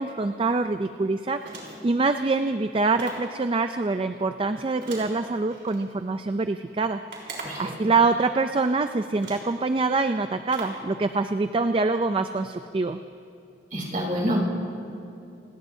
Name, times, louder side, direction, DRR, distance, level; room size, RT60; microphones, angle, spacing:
voice 1, 0.0-1.4 1.8-7.0 7.6-13.0, right 3 dB, 30° right, 8 dB, 0.4 m, -25 dB
sound 1, 1.4-2.0 3.0-3.4 4.8-5.8 7.1-7.7 8.6-8.7 9.2-9.6 10.5-10.9, right 2 dB, 80° right, 3.8 m, -39 dB
voice 2, 13.7-14.4, equal, 45° right, -3 dB, 3.8 m, -27 dB
28.5 x 18.5 x 2.7 m, 2.7 s
head